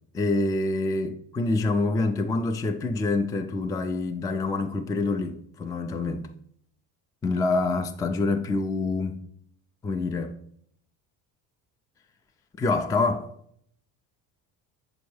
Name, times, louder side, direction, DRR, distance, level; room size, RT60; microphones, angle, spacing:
voice 1, 0.1-6.3 7.2-9.2 9.8-10.3 12.6-13.3, left 3 dB, 10° left, 0.3 m, -26 dB
7.1 x 4.2 x 3.2 m
hypercardioid pair, 60°, 50 cm